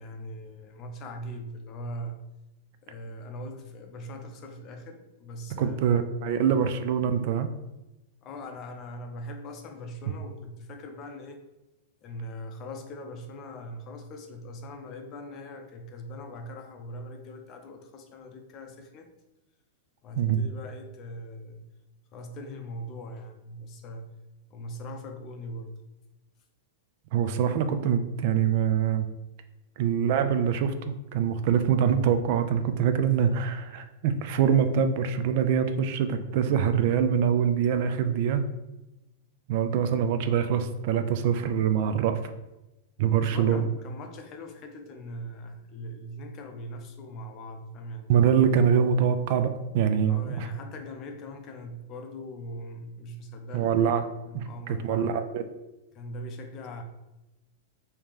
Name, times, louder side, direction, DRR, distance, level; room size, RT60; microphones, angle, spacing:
voice 1, 0.0-2.2 2.8-6.0 6.3-6.5 8.2-11.4 12.0-19.1 20.0-21.7 22.1-24.1 24.5-25.8 43.2-48.1 50.1-53.7 54.2-55.2 55.9-56.8, equal, 35° left, 5 dB, 0.5 m, -41 dB
voice 2, 5.6-7.5 20.1-20.4 27.1-29.1 29.8-38.5 39.5-42.3 43.0-43.7 48.1-50.5 53.5-54.0 54.3-55.4, right 8 dB, 50° right, 9 dB, 0.3 m, -24 dB
3.1 x 2.8 x 3.6 m, 0.99 s
supercardioid pair, 145°, 0 cm